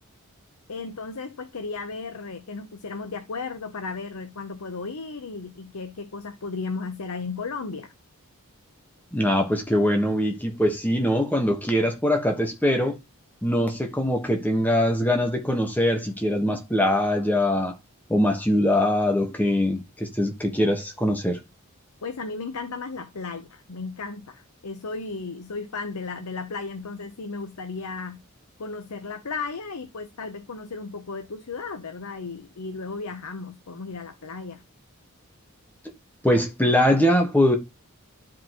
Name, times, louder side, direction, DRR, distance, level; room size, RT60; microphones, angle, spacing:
voice 1, 0.7-7.9 22.0-28.2 28.6-34.6, left 4 dB, 85° left, 0.8 m, -35 dB
voice 2, 9.1-13.0 13.4-17.7 18.1-21.4 36.2-37.6, left 1 dB, 10° left, 1.2 m, -22 dB
11.5 x 4.9 x 3.0 m
head